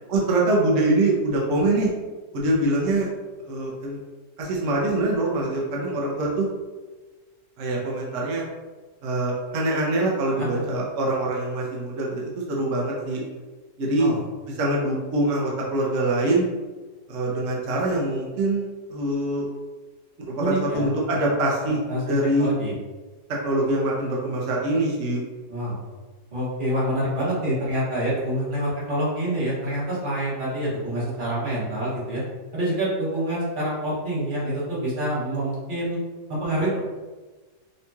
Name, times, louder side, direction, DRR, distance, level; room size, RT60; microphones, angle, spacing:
voice 1, 0.1-1.9 2.3-3.1 3.5-4.0 4.4-6.5 7.6-8.4 9.0-13.2 13.8-14.1 14.6-16.5 17.1-19.5 20.2-21.8 22.1-22.5 23.3-25.2, right 2 dB, 60° right, -3 dB, 0.9 m, -24 dB
voice 2, 20.4-20.9 21.9-22.0 22.4-22.7 25.5-25.8 26.3-32.2 32.5-36.0 36.3-36.8, right 1 dB, 30° right, -7 dB, 1.3 m, -26 dB
5.2 x 2.9 x 2.3 m, 1.3 s
omnidirectional pair, 1.8 m